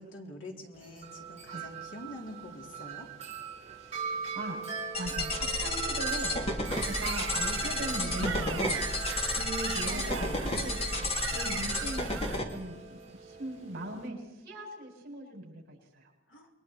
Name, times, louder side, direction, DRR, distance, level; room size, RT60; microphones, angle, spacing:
voice 1, 0.0-3.1 9.9-10.4 10.9-11.1 16.3-16.5, left 1 dB, 70° left, 1 dB, 3.8 m, -45 dB
Wind chime, 0.7-14.1, right 6 dB, 35° right, 5.1 m, -41 dB
voice 2, 3.9-4.6 5.0-6.3 6.8-8.8 9.2-10.8 11.2-16.1, right 1 dB, 50° right, -1 dB, 7.7 m, -40 dB
sound 1, 4.9-12.4, left 1 dB, 30° left, 2.5 m, -32 dB
sound 2, 6.7-12.4, right 7 dB, 75° right, 1.9 m, -39 dB
29.0 x 22.0 x 4.8 m, 1.0 s
head